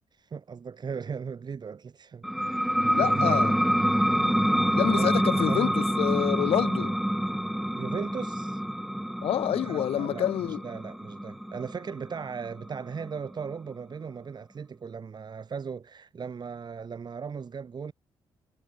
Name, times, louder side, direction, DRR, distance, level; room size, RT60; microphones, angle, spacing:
voice 1, 0.1-3.6 5.0-5.8 7.7-8.6 9.5-10.3 10.6-17.9, right 6 dB, 45° right, 5.1 m, -37 dB
sound 1, 2.2-13.5, equal, ahead, 1.9 m, -27 dB
voice 2, 2.9-3.5 4.7-7.0 9.2-10.6, left 11 dB, 75° left, 1.2 m, -28 dB
cardioid pair, 90°, 10 cm